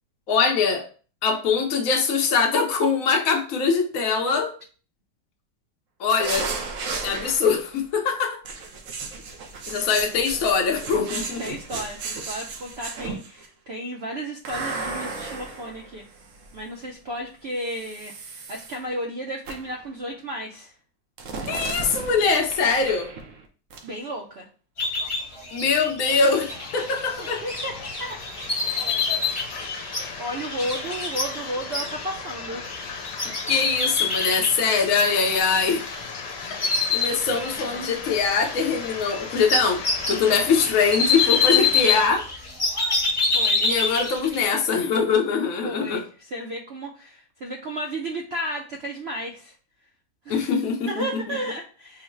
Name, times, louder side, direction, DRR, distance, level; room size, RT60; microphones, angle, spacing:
voice 1, 0.3-0.8 1.2-4.5 6.0-6.5 7.0-8.4 9.7-11.5 21.5-23.1 25.5-27.4 33.5-35.8 36.9-39.8 40.1-42.2 43.6-46.0 50.3-51.0, left 5 dB, 60° left, 1.1 m, -22 dB
sound 1, 6.2-7.7 8.4-13.5 14.5-16.6 17.6-18.8 19.5-19.8 21.2-23.5 23.7-23.9, right 4 dB, 60° right, 0.9 m, -34 dB
voice 2, 11.4-16.0 16.5-20.7 23.8-24.5 27.2-28.2 30.2-32.6 37.5-38.0 43.3-43.6 45.6-49.5 50.2-50.5 50.9-52.0, right 1 dB, 80° right, 0.5 m, -33 dB
sound 2, 24.8-36.1 36.4-37.9 38.2-44.4, left 4 dB, 30° left, 0.6 m, -26 dB
sound 3, 26.1-42.1, left 5 dB, 85° left, 1.3 m, -37 dB
3.8 x 2.1 x 4.4 m
omnidirectional pair, 1.8 m